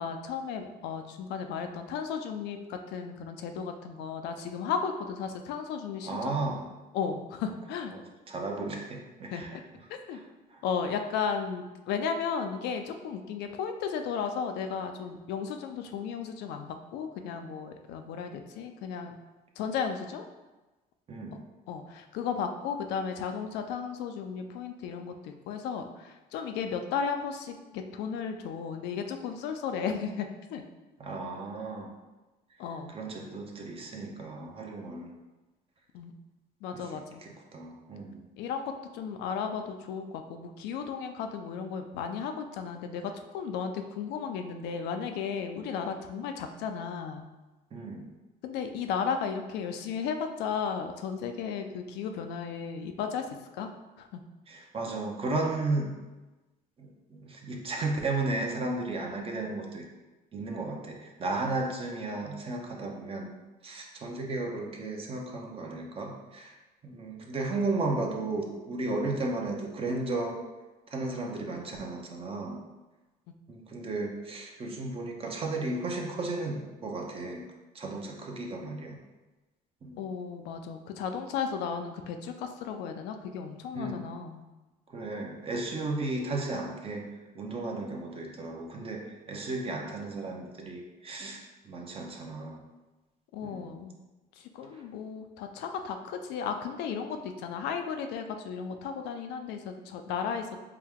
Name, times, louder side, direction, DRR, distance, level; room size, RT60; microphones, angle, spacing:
voice 1, 0.0-6.4 6.9-7.9 9.3-9.6 10.1-10.2 10.6-19.1 19.6-20.2 21.7-30.6 32.6-32.9 35.9-36.1 36.6-37.2 38.4-47.2 48.4-53.7 54.0-54.2 80.0-84.4 93.3-94.0 94.4-100.5, left 6 dB, 85° left, 6 dB, 0.4 m, -34 dB
voice 2, 6.1-6.7 7.9-9.6 10.1-10.2 10.5-10.6 21.1-21.4 31.0-31.9 32.9-35.1 36.7-36.9 37.2-38.3 47.7-48.1 54.5-55.9 56.8-59.8 60.3-63.3 63.6-66.6 66.8-70.4 70.9-72.6 73.5-77.4 77.7-79.0 79.8-80.0 83.7-84.1 84.9-87.1 87.3-92.6 93.4-93.7 94.7-94.8, right 2 dB, 35° right, 1 dB, 0.7 m, -34 dB
4.6 x 2.2 x 3.5 m, 1.1 s
cardioid pair, 110°, 17 cm